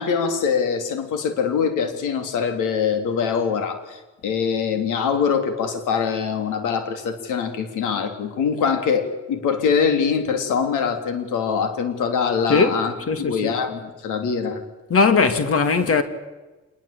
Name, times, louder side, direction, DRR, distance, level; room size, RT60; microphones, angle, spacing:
voice 1, 0.0-12.9 13.2-14.6, left 6 dB, 90° left, 3.6 m, -23 dB
voice 2, 12.5-12.8 13.1-13.5 14.9-16.0, left 4 dB, 50° left, 2.8 m, -19 dB
26.5 x 21.0 x 8.7 m
cardioid pair, 90°, 30 cm